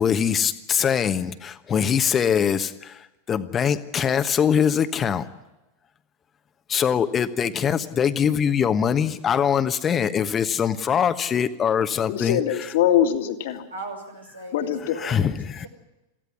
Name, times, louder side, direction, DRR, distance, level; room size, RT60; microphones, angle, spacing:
voice 1, 0.0-3.0 3.3-5.2 6.7-12.4 15.0-15.7, left 8 dB, 25° left, 11 dB, 1.3 m, -22 dB
voice 2, 12.1-13.7 14.5-15.0, left 10 dB, 55° left, 6 dB, 2.2 m, -22 dB
voice 3, 13.7-15.7, right 2 dB, 85° right, 1 dB, 6.4 m, -39 dB
23.0 x 15.5 x 9.7 m, 0.99 s
figure-of-eight pair, 90°, 0 cm